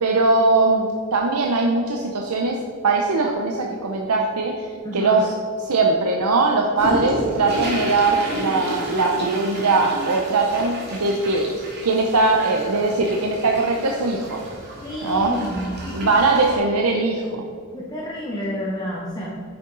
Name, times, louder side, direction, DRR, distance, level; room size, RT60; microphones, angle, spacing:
voice 1, 0.0-2.6 2.8-5.3 5.6-11.5 11.8-14.4 15.0-15.3 15.9-17.4, right 3 dB, 85° right, 1 dB, 0.8 m, -20 dB
voice 2, 4.8-5.3 14.8-16.1 16.7-16.8 17.7-19.4, equal, 15° left, -4 dB, 1.0 m, -30 dB
sound 1, 6.8-16.6, right 1 dB, 45° right, 2.3 m, -32 dB
9.2 x 7.0 x 3.9 m, 2.1 s
head